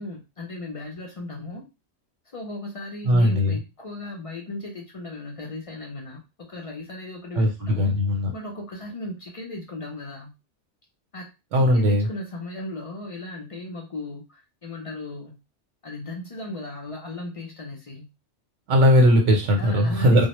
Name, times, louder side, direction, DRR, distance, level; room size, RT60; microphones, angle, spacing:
voice 1, 0.0-1.6 2.3-7.9 8.3-10.4 11.1-11.3 11.6-15.4 15.8-18.1 19.6-20.3, left 2 dB, 55° left, 0 dB, 0.3 m, -36 dB
voice 2, 3.1-3.6 7.4-8.3 11.5-12.1 18.7-20.3, equal, 85° right, 2 dB, 1.0 m, -19 dB
2.2 x 2.0 x 2.9 m, 0.26 s
omnidirectional pair, 1.2 m